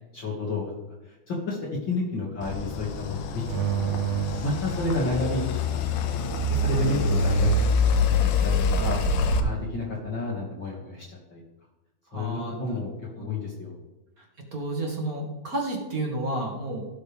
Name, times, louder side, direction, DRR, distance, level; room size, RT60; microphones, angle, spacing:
voice 1, 0.1-0.6 1.1-1.6 1.9-3.9 4.4-6.2 6.5-9.0 9.4-11.4 12.1-13.7, left 2 dB, 40° left, -5 dB, 2.5 m, -31 dB
sound 1, 2.4-9.4, left 3 dB, 90° left, 2.4 m, -25 dB
sound 2, 3.4-5.4 6.4-7.9, right 12 dB, 80° right, 1.6 m, -32 dB
voice 2, 12.1-12.8 13.2-13.3 14.2-14.3 14.5-16.9, right 1 dB, 35° right, -1 dB, 2.0 m, -31 dB
18.0 x 6.5 x 3.5 m, 1.1 s
omnidirectional pair, 3.5 m